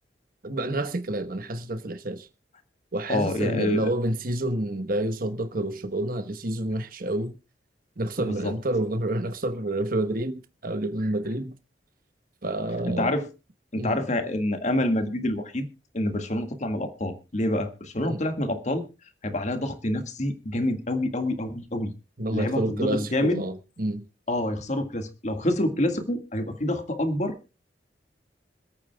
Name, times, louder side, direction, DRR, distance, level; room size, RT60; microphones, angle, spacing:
voice 1, 0.4-2.3 2.9-7.3 8.0-11.5 12.4-13.1 13.7-14.0 18.0-18.2 22.2-24.0, right 1 dB, 55° right, 1.2 m, -29 dB
voice 2, 3.1-3.9 8.2-8.6 12.9-13.3 13.7-15.7 15.9-18.9 19.2-21.9 22.3-23.4 24.3-27.4, left 1 dB, 40° left, 1.8 m, -27 dB
26.5 x 8.9 x 2.3 m
head